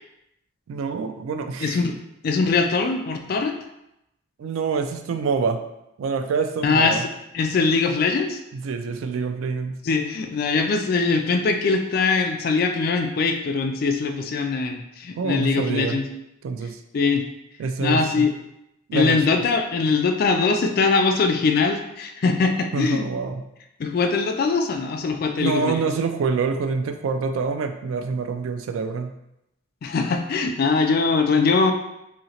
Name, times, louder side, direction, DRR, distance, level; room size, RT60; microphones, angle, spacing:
voice 1, 0.7-1.8 4.4-5.6 6.0-7.0 8.5-9.8 15.2-16.0 16.4-16.8 17.6-18.3 18.9-19.4 22.7-23.4 25.4-29.1, right 5 dB, 80° right, 8 dB, 0.3 m, -26 dB
voice 2, 1.6-1.9 2.2-3.5 6.6-7.1 7.3-8.4 9.8-16.0 16.9-17.2 17.8-18.3 18.9-23.0 23.8-25.8 29.8-31.7, left 4 dB, 45° left, 5 dB, 0.3 m, -22 dB
2.8 x 2.8 x 2.8 m, 0.85 s
head